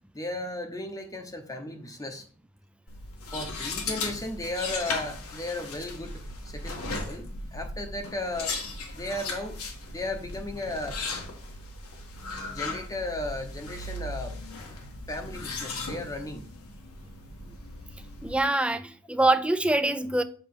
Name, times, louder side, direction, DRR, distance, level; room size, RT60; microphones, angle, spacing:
voice 1, 0.1-2.2 3.3-8.5 8.9-9.6 9.9-11.0 12.5-14.7 15.1-16.4, left 2 dB, 15° left, 0.8 m, -35 dB
sound 1, 2.9-18.4, left 3 dB, 90° left, 1.5 m, -37 dB
voice 2, 18.2-20.2, right 2 dB, 5° right, 0.4 m, -24 dB
7.6 x 3.2 x 5.9 m
head